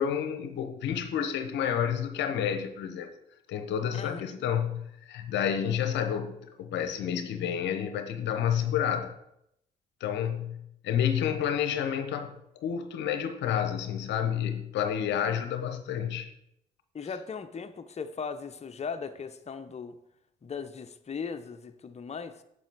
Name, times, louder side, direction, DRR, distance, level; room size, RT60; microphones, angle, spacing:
voice 1, 0.0-3.1 3.5-9.1 10.0-10.6 10.8-16.3, left 9 dB, 70° left, 0.7 m, -30 dB
voice 2, 16.9-20.0 20.4-22.4, left 5 dB, 35° left, 0.7 m, -38 dB
7.6 x 7.3 x 4.0 m
hypercardioid pair, 40°, 19 cm